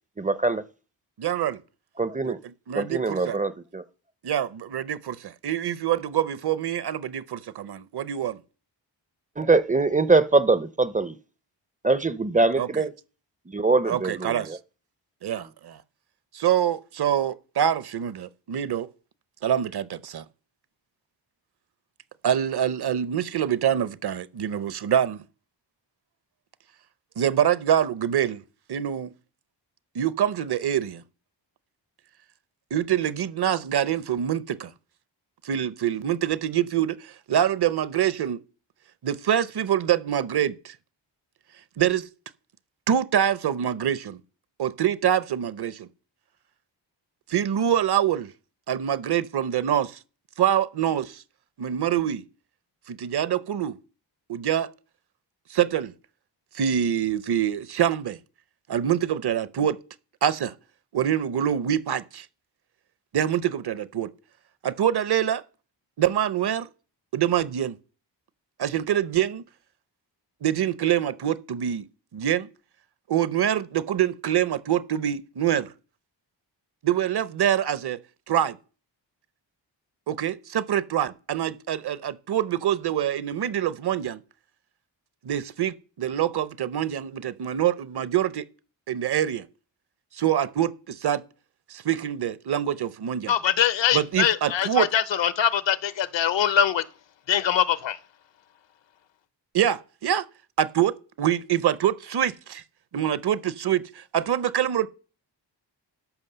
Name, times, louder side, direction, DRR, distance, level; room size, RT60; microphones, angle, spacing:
voice 1, 0.2-0.6 2.0-2.4 2.7-3.8 9.4-11.2 11.8-12.9 13.5-14.6, right 3 dB, 20° right, 0.4 m, -23 dB
voice 2, 1.2-1.6 2.2-2.3 2.7-3.4 4.2-8.4 12.6-12.7 13.9-14.6 15.2-15.8 16.3-18.9 19.4-20.2 22.2-25.2 27.2-28.4 28.7-29.1 29.9-31.0 32.7-34.7 35.4-38.4 39.0-40.7 41.8-42.0 42.9-44.2 44.6-45.9 47.3-48.3 48.7-50.0 50.4-51.2 51.6-52.2 52.9-53.8 54.3-54.7 55.5-55.9 56.5-58.2 58.7-59.8 60.2-60.5 60.9-62.3 63.1-64.1 64.6-65.4 66.0-66.7 67.1-67.7 68.6-69.4 70.4-71.9 72.1-72.5 73.1-75.7 76.8-78.0 78.3-78.6 80.1-84.2 85.2-88.5 88.9-89.4 90.1-91.2 91.7-93.3 93.9-94.9 99.5-100.3 100.6-102.6 102.9-104.9, right 10 dB, 60° right, 0.7 m, -25 dB
voice 3, 93.3-96.8 97.3-98.0, left 9 dB, 75° left, 0.8 m, -23 dB
13.0 x 5.8 x 6.7 m
wide cardioid pair, 160°, 45 cm